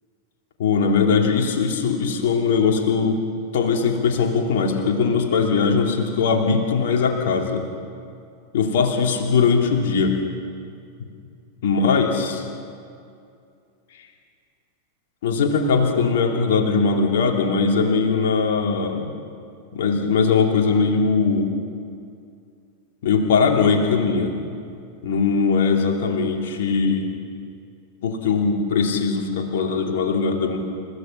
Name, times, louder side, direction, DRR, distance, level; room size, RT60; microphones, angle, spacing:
voice 1, 0.6-3.2 3.5-7.6 8.5-10.1 11.6-12.5 15.2-19.1 19.7-21.5 23.0-24.3 25.0-27.1 28.0-30.6, left 5 dB, 55° left, 2 dB, 2.9 m, -20 dB
29.5 x 15.5 x 5.8 m, 2.4 s
figure-of-eight pair, 90°, 0 cm